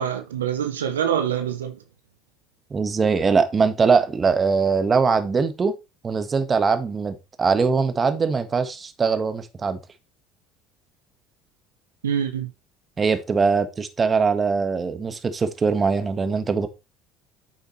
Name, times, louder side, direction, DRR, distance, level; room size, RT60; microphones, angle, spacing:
voice 1, 0.0-1.8 12.0-12.5, right 8 dB, 85° right, 0.8 m, -25 dB
voice 2, 2.7-5.7 6.0-9.8 13.0-16.7, right 5 dB, 30° right, 1.4 m, -21 dB
9.1 x 6.8 x 3.2 m
hypercardioid pair, 65°, 0 cm